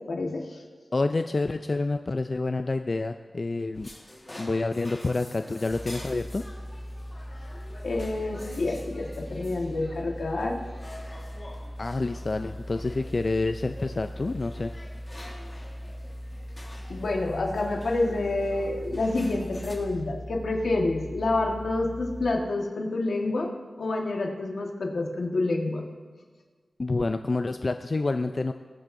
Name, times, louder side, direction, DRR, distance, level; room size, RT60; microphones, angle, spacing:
voice 1, 0.1-0.6 7.8-10.6 16.9-23.5 23.8-25.8, left 2 dB, 80° left, 1 dB, 1.4 m, -28 dB
voice 2, 0.9-3.9 4.4-6.5 11.8-14.7 26.8-28.5, left 3 dB, 40° left, 8 dB, 0.3 m, -28 dB
sound 1, 3.7-19.8, left 1 dB, 20° left, 1.5 m, -47 dB
sound 2, 5.7-22.3, equal, ahead, 2.1 m, -40 dB
21.5 x 7.3 x 2.6 m, 1.5 s
wide cardioid pair, 115°, 0 cm